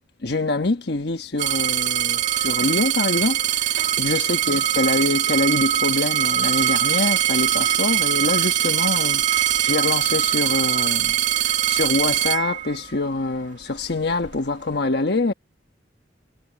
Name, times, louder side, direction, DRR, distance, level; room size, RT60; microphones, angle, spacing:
voice 1, 0.2-15.3, left 2 dB, 60° left, 1.3 m, -25 dB
sound 1, 1.4-13.1 13.8-14.4, right 11 dB, 45° right, 1.9 m, -22 dB
head